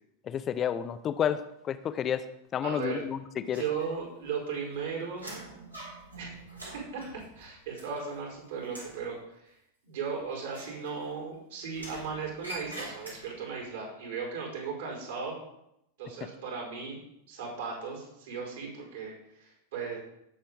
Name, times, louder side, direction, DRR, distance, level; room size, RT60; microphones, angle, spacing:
voice 1, 0.2-2.3 2.5-3.6, left 9 dB, 30° left, 12 dB, 0.8 m, -30 dB
voice 2, 2.6-3.0 3.5-5.3 6.2-6.4 6.9-7.0 7.3-9.2 9.4-9.5 9.8-15.4 16.0-20.0, right 5 dB, 60° right, -2 dB, 4.6 m, -36 dB
metal gate, 3.5-4.3 4.6-8.3 8.6-9.0 10.5-11.3 11.7-13.5, right 1 dB, 85° right, 3.6 m, -45 dB
18.0 x 6.8 x 3.6 m, 0.81 s
figure-of-eight pair, 90°, 0 cm